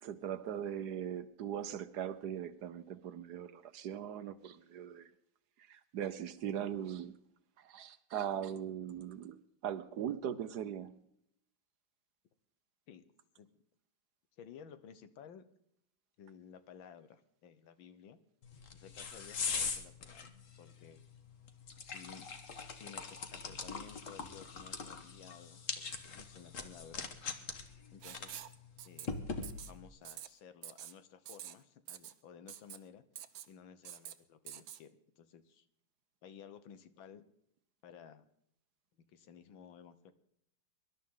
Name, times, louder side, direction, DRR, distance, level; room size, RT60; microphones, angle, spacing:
voice 1, 0.0-5.1 5.6-7.2 7.6-11.0, right 9 dB, 65° right, 1.2 m, -40 dB
voice 2, 14.4-15.4 16.2-18.2 18.7-20.3 20.6-21.0 21.8-22.3 22.8-27.1 27.9-28.4 28.9-29.2 29.7-33.0 33.5-35.7 36.2-37.2 37.8-38.3 39.1-40.1, left 7 dB, 85° left, 1.8 m, -55 dB
sound 1, 18.4-29.9, left 5 dB, 45° left, 1.5 m, -42 dB
Writing, 28.0-28.5 28.8-29.1 29.4-29.7 30.0-30.3 30.6-30.9 31.3-31.5 31.9-32.1 32.5-32.8 33.2-33.5 33.8-34.1 34.5-34.8, right 11 dB, 85° right, 1.6 m, -47 dB
24.0 x 12.0 x 3.8 m
omnidirectional pair, 2.1 m